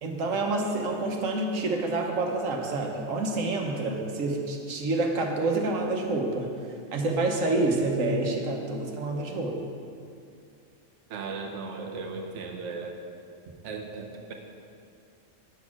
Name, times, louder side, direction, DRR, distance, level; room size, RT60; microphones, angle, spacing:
voice 1, 0.0-6.5 6.9-9.5, right 2 dB, 85° right, 2 dB, 1.4 m, -28 dB
voice 2, 11.1-13.0 13.6-14.3, right 4 dB, 70° right, 2 dB, 1.1 m, -36 dB
8.7 x 6.3 x 5.9 m, 2.4 s
omnidirectional pair, 1.3 m